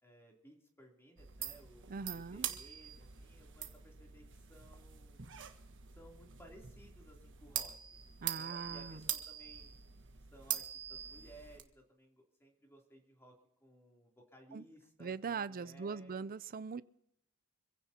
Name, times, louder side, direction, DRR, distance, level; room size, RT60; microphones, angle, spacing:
voice 1, 0.0-2.0 2.3-4.2 4.5-5.2 5.9-8.0 8.3-9.7 10.3-10.6 10.9-13.3 13.6-16.3, right 1 dB, 10° left, 3.1 m, -59 dB
sound 1, 1.2-11.6, right 10 dB, 55° right, 1.4 m, -44 dB
voice 2, 1.9-2.5 8.2-9.0 14.5-14.6 15.0-16.8, right 5 dB, 40° right, 0.5 m, -41 dB
26.0 x 16.0 x 2.9 m
head